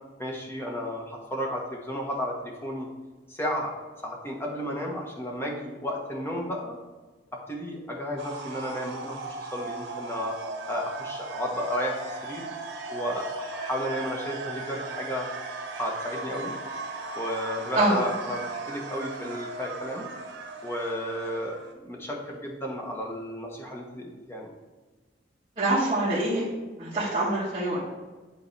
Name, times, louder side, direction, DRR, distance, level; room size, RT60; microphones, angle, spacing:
voice 1, 0.2-2.9 3.3-3.7 4.0-6.8 7.5-10.3 10.7-12.4 12.9-15.3 15.8-16.5 17.1-20.1 20.6-24.5, equal, 15° left, -1 dB, 1.2 m, -33 dB
sound 1, 8.2-21.7, right 3 dB, 80° right, 1.0 m, -37 dB
voice 2, 25.6-26.4 26.8-27.8, right 2 dB, 30° right, -12 dB, 1.9 m, -25 dB
11.0 x 3.8 x 3.3 m, 1.3 s
head